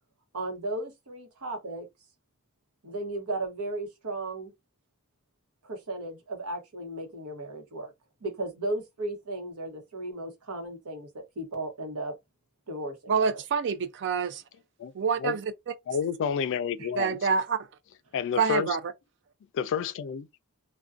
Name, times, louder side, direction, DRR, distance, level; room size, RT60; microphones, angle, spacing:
voice 1, 0.3-1.9 2.8-4.5 5.6-7.9 8.2-12.2 12.7-13.4 16.8-16.9, right 2 dB, 85° right, 0.9 m, -35 dB
voice 2, 13.1-14.4 14.9-15.4 17.0-17.6 18.4-18.8, right 5 dB, 55° right, 0.4 m, -26 dB
voice 3, 15.9-17.2 18.1-18.8 19.5-20.3, left 7 dB, 60° left, 0.3 m, -29 dB
2.4 x 2.2 x 2.4 m
head